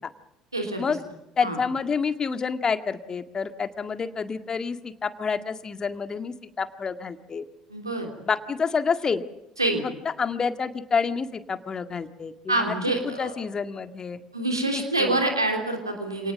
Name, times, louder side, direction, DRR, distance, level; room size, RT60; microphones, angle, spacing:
voice 1, 0.5-0.8 1.4-1.6 7.7-8.1 9.6-9.8 12.5-13.3 14.3-16.3, right 2 dB, 90° right, 3 dB, 3.1 m, -26 dB
voice 2, 1.4-7.5 8.3-9.2 9.8-9.9 10.2-12.8 13.0-14.2 14.7-15.2, left 5 dB, 30° left, 9 dB, 1.8 m, -28 dB
27.5 x 19.0 x 7.9 m, 0.91 s
figure-of-eight pair, 60°, 2 cm